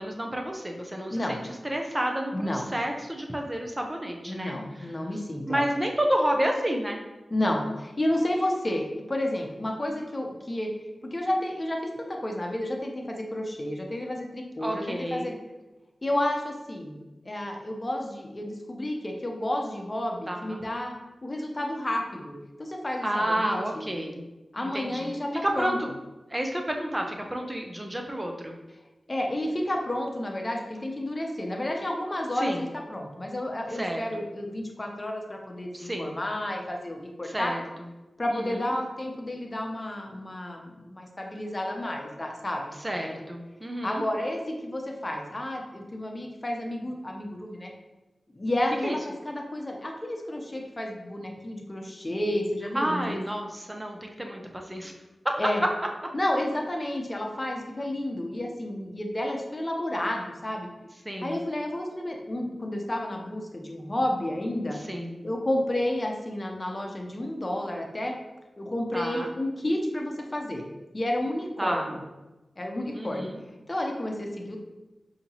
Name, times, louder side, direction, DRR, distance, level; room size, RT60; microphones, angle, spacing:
voice 1, 0.0-4.9 5.5-7.0 14.6-15.4 20.3-20.6 23.0-24.2 24.6-25.1 25.4-25.9 26.3-28.5 32.4-32.6 33.7-34.2 35.7-36.1 37.2-37.6 38.3-38.7 42.8-44.0 48.8-49.0 52.7-54.9 61.0-61.4 64.7-65.2 68.9-69.3 71.6-71.9 72.9-73.4, right 1 dB, 20° right, 2 dB, 0.7 m, -30 dB
voice 2, 2.3-2.7 4.3-5.6 7.3-10.7 11.1-15.3 16.0-17.0 17.2-20.9 21.2-23.9 24.5-25.8 29.1-37.5 38.2-43.1 43.8-47.7 48.3-53.3 55.4-55.6 56.1-60.7 61.2-64.8 65.2-68.2 68.6-70.6 70.9-72.0 72.6-73.3 73.7-74.6, left 1 dB, 35° left, 1 dB, 0.8 m, -31 dB
5.0 x 2.9 x 2.9 m, 1.1 s
cardioid pair, 45°, 0 cm